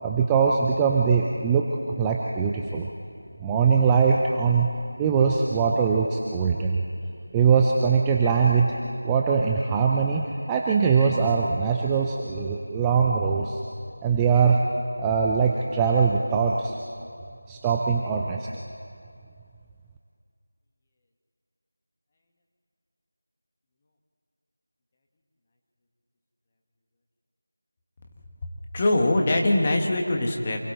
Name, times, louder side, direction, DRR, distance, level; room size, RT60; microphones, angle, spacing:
voice 1, 0.0-1.7 2.0-2.9 3.4-4.7 5.0-6.8 7.3-8.7 9.0-13.6 14.0-14.6 15.0-16.7 17.5-18.5, right 5 dB, 5° right, -1 dB, 0.4 m, -22 dB
voice 2, 28.4-30.6, left 1 dB, 20° left, 1 dB, 1.4 m, -23 dB
27.0 x 23.5 x 4.2 m, 2.4 s
figure-of-eight pair, 175°, 0 cm